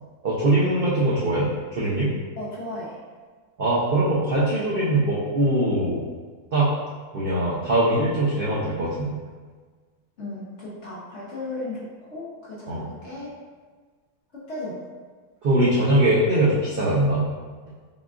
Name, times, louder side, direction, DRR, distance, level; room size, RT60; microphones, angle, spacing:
voice 1, 0.2-2.1 3.6-6.0 6.5-6.7 7.1-9.2 12.7-12.9 15.4-17.3, right 1 dB, 65° right, -8 dB, 0.5 m, -22 dB
voice 2, 2.4-3.0 10.2-13.3 14.3-14.8, left 2 dB, 50° left, -7 dB, 1.0 m, -35 dB
5.4 x 2.3 x 2.4 m, 1.5 s
omnidirectional pair, 1.8 m